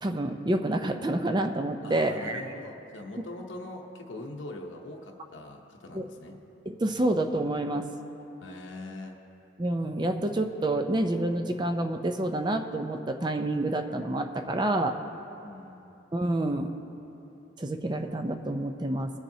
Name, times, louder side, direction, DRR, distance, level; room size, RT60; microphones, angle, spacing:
voice 1, 0.0-2.4 5.9-6.0 6.8-7.9 9.6-15.0 16.1-16.7 17.6-19.1, right 1 dB, 25° right, 6 dB, 0.5 m, -28 dB
voice 2, 1.8-6.4 8.4-9.1 15.4-15.8, left 2 dB, 80° left, 1 dB, 0.8 m, -42 dB
20.5 x 7.2 x 2.8 m, 2.9 s
head